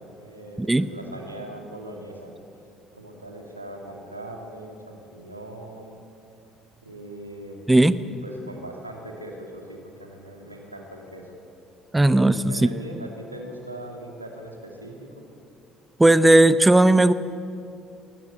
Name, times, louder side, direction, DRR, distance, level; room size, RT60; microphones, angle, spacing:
voice 1, 0.0-2.3 3.0-6.0 6.8-7.6 8.0-11.3 12.0-14.9, right 1 dB, 90° right, 2 dB, 2.7 m, -40 dB
voice 2, 0.6-0.9 7.7-8.0 11.9-12.7 16.0-17.1, right 1 dB, 10° right, 15 dB, 0.8 m, -16 dB
22.0 x 18.5 x 9.1 m, 2.5 s
figure-of-eight pair, 50°, 0 cm